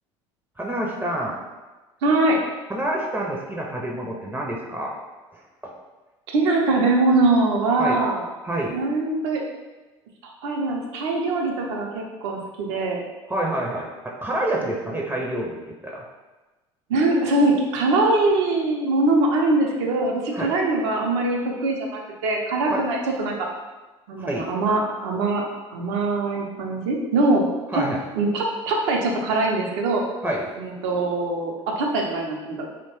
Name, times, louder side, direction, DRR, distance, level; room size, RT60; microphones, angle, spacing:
voice 1, 0.6-1.4 2.7-5.0 5.6-5.7 7.8-8.0 8.4-8.8 13.3-16.1 20.3-20.5 22.7-22.8 24.2-24.5 27.7-28.0 30.2-30.5, right 1 dB, 15° right, -2 dB, 0.5 m, -27 dB
voice 2, 2.0-2.4 6.3-8.2 8.7-9.4 10.4-13.0 16.9-23.4 24.1-25.5 25.7-27.5 27.7-27.8 28.1-30.0 30.6-32.7, right 2 dB, 75° right, 0 dB, 0.5 m, -22 dB
3.0 x 2.1 x 2.9 m, 1.2 s
hypercardioid pair, 70°, 15 cm